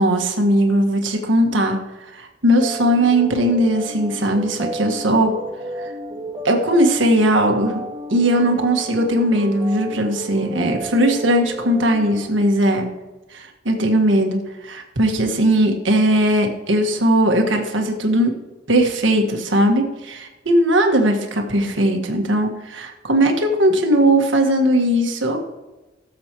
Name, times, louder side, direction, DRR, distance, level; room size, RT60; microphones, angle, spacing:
voice 1, 0.0-5.3 5.7-5.9 6.4-7.8 8.1-12.9 13.3-18.3 18.7-25.4, right 1 dB, 75° right, 3 dB, 1.6 m, -18 dB
sound 1, 2.6-12.3, right 2 dB, 25° right, 1.7 m, -32 dB
17.0 x 7.5 x 3.0 m, 1.1 s
head